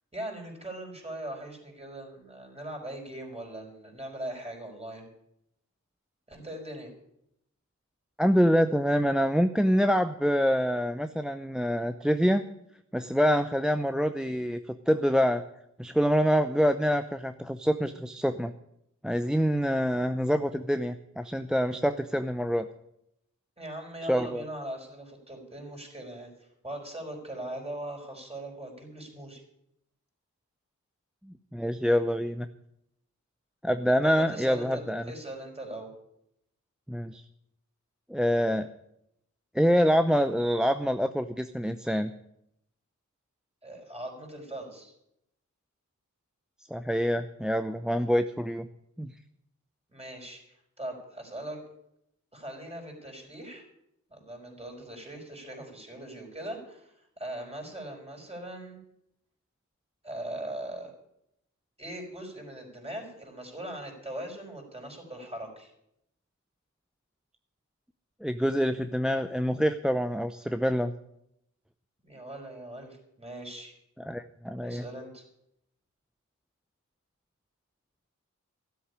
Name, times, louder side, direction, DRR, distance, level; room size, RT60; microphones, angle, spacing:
voice 1, 0.1-5.1 6.3-6.9 23.6-29.4 34.0-35.9 43.6-44.9 49.9-51.6 52.3-53.7 54.1-58.8 60.0-60.9 61.8-65.7 72.0-73.7 74.6-75.3, right 1 dB, 20° right, 1 dB, 5.4 m, -40 dB
voice 2, 8.2-12.4 12.9-15.4 15.8-18.5 19.0-22.7 24.0-24.4 31.5-32.5 33.6-35.0 36.9-37.2 38.1-38.7 39.5-42.1 46.7-48.7 49.0-49.1 68.2-70.9 74.1-74.8, equal, ahead, 10 dB, 0.6 m, -26 dB
13.5 x 7.9 x 9.9 m, 0.78 s
wide cardioid pair, 65°, 31 cm